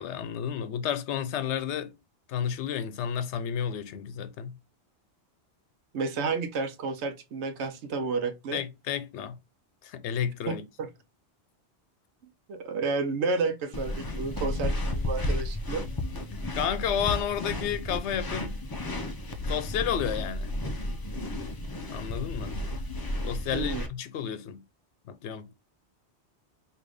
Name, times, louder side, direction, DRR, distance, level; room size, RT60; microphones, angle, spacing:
voice 1, 0.0-1.9 2.3-4.6 8.5-9.4 9.8-10.7 16.5-18.6 19.5-20.5 21.9-22.5 23.2-24.6 25.1-25.5, left 8 dB, 85° left, 0.9 m, -31 dB
voice 2, 5.9-8.6 10.5-10.9 12.5-15.9 23.5-23.8, right 4 dB, 85° right, 1.0 m, -31 dB
sound 1, 13.7-23.9, left 1 dB, 40° left, 0.3 m, -33 dB
4.8 x 2.9 x 2.5 m
omnidirectional pair, 1.1 m